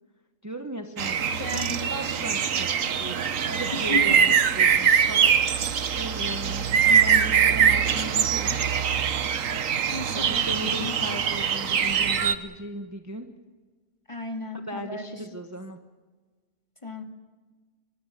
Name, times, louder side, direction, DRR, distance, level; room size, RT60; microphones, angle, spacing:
voice 1, 0.4-8.6 10.1-13.3 14.7-15.8, equal, 15° right, 5 dB, 1.1 m, -37 dB
sound 1, 1.0-12.4, right 7 dB, 75° right, 1.4 m, -23 dB
voice 2, 1.4-2.1 2.4-2.5 3.7-4.2 9.9-11.0 14.1-15.3 16.8-17.0, left 2 dB, 25° left, 4 dB, 2.2 m, -35 dB
25.0 x 21.0 x 6.7 m, 1.4 s
omnidirectional pair, 1.4 m